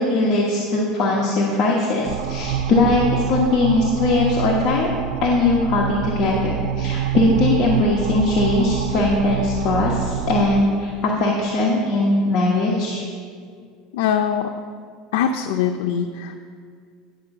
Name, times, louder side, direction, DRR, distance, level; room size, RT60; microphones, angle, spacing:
voice 1, 0.0-13.0, left 2 dB, 40° left, -3 dB, 1.2 m, -20 dB
sound 1, 2.1-10.6, right 10 dB, 75° right, 0.4 m, -26 dB
voice 2, 13.9-14.5 15.1-16.4, left 8 dB, 85° left, 5 dB, 0.5 m, -22 dB
10.0 x 5.3 x 6.9 m, 2.1 s
cardioid pair, 165°, 0 cm